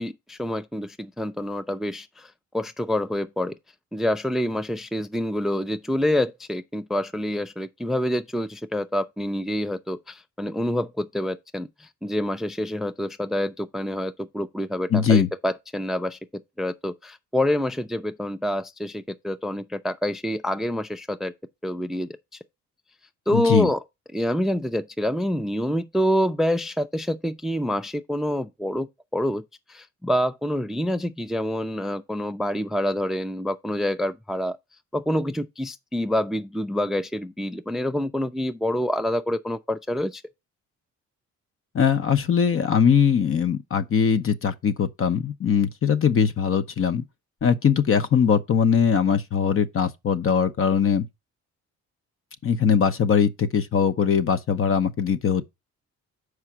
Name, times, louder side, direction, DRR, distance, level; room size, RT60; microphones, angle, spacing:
voice 1, 0.0-3.5 3.9-16.2 16.6-21.3 21.6-22.4 23.3-23.8 24.1-29.4 29.7-34.6 34.9-40.2, equal, ahead, 0.4 m, -27 dB
voice 2, 14.9-15.3 23.3-23.7 41.7-47.0 47.4-51.1 52.4-55.5, left 7 dB, 45° left, 0.8 m, -21 dB
5.5 x 4.9 x 6.1 m
cardioid pair, 90°, 30 cm